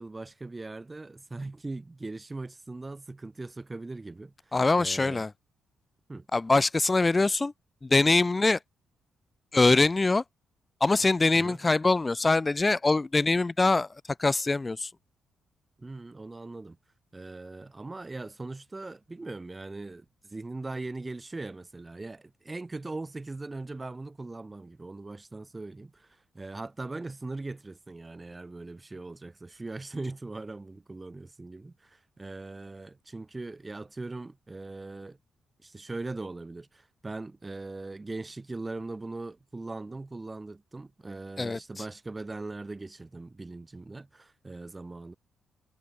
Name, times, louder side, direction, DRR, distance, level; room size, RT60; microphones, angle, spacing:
voice 1, 0.0-5.2 6.1-6.3 11.3-11.6 15.8-16.8 17.1-35.2 35.6-45.2, right 2 dB, 20° right, 4.1 m, -40 dB
voice 2, 4.5-5.3 6.3-7.5 7.8-8.6 9.5-10.2 10.8-13.9 14.2-14.9 41.4-41.6, left 3 dB, 20° left, 0.4 m, -23 dB
cardioid pair, 100°, 0 cm